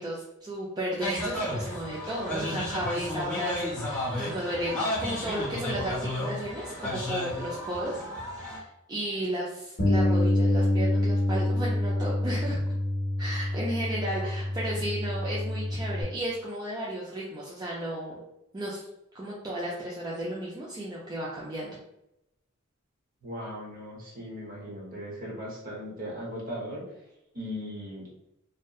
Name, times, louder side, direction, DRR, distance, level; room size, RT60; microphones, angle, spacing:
voice 1, 0.0-8.0 8.4-12.6 13.2-18.2 18.5-18.9 19.1-21.7, right 1 dB, 20° right, -6 dB, 0.3 m, -34 dB
sound 1, 1.0-8.6, left 1 dB, 5° left, 0.7 m, -33 dB
Bass guitar, 9.8-16.0, left 1 dB, 50° left, 0.7 m, -26 dB
voice 2, 14.2-14.7 23.2-26.9 27.3-28.1, equal, 40° right, -4 dB, 0.8 m, -38 dB
2.6 x 2.1 x 2.3 m, 0.85 s
head